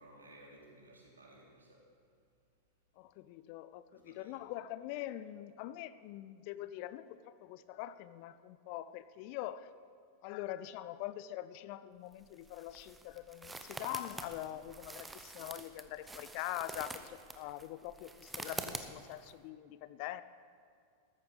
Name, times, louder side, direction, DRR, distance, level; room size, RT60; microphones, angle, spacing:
voice 1, 0.0-1.9 3.9-4.4, right 1 dB, 75° right, -2 dB, 3.0 m, -57 dB
voice 2, 3.0-9.7 10.2-20.2, left 14 dB, 45° left, 15 dB, 0.4 m, -43 dB
sound 1, 12.1-19.3, right 2 dB, 10° right, 0.8 m, -46 dB
14.0 x 13.5 x 4.0 m, 2.3 s
figure-of-eight pair, 90°, 0 cm